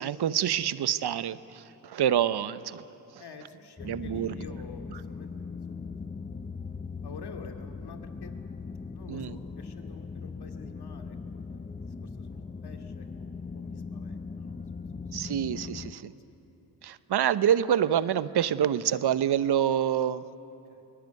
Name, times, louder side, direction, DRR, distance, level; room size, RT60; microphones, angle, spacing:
voice 1, 0.0-2.8 3.8-4.4 9.1-9.3 15.1-16.1 16.8-20.2, right 10 dB, 55° right, 15 dB, 1.0 m, -27 dB
voice 2, 3.2-6.6 7.0-8.3 8.9-15.2 15.6-17.0 20.7-20.8, left 4 dB, 55° left, 5 dB, 2.5 m, -50 dB
sound 1, 3.8-15.9, left 4 dB, 15° left, 0.7 m, -40 dB
23.0 x 19.0 x 9.4 m, 2.8 s
hypercardioid pair, 45°, 48 cm